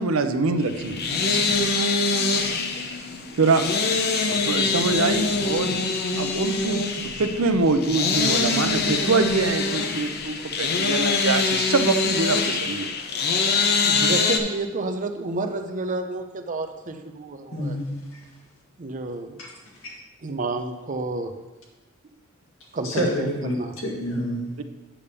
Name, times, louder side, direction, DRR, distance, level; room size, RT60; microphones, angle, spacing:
voice 1, 0.0-1.4 3.4-3.6 4.3-5.8 6.2-12.9, right 3 dB, 80° right, 9 dB, 0.6 m, -24 dB
sound 1, 0.7-14.4, left 4 dB, 50° left, 0.7 m, -24 dB
voice 2, 13.8-17.8 18.8-19.4 20.2-21.3 22.7-23.3 23.5-23.7, right 2 dB, 40° right, 6 dB, 0.6 m, -30 dB
voice 3, 17.5-18.2 19.4-19.5 19.8-19.9 22.8-24.5, equal, 70° left, -2 dB, 1.9 m, -28 dB
8.5 x 3.5 x 6.8 m, 1.1 s
head